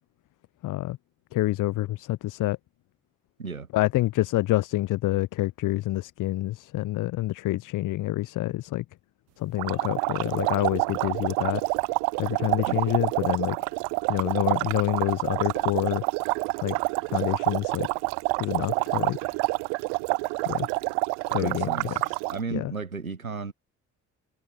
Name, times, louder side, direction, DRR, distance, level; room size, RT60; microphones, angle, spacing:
voice 1, 0.6-1.0 1.3-2.6 3.7-8.8 9.4-11.6 12.2-13.6 14.1-16.0 16.6-16.8 17.1-17.9 18.4-19.3 20.4-20.7 21.3-22.2 22.5-22.7, left 16 dB, 50° left, 0.8 m, -27 dB
sound 1, 9.6-22.4, right 36 dB, 65° right, 1.0 m, -28 dB
voice 2, 21.3-22.0 22.3-23.5, right 4 dB, 90° right, 1.2 m, -34 dB
figure-of-eight pair, 40°, 41 cm